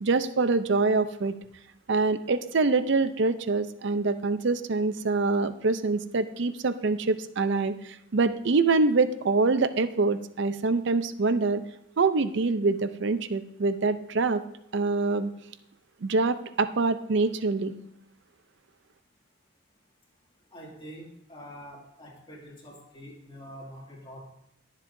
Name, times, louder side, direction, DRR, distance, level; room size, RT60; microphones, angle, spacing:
voice 1, 0.0-1.4 1.9-11.6 12.0-14.4 14.7-15.3 16.0-17.7, right 3 dB, 60° right, 12 dB, 0.5 m, -25 dB
voice 2, 20.5-24.2, equal, 25° left, -3 dB, 2.2 m, -45 dB
21.0 x 7.4 x 2.6 m, 0.77 s
head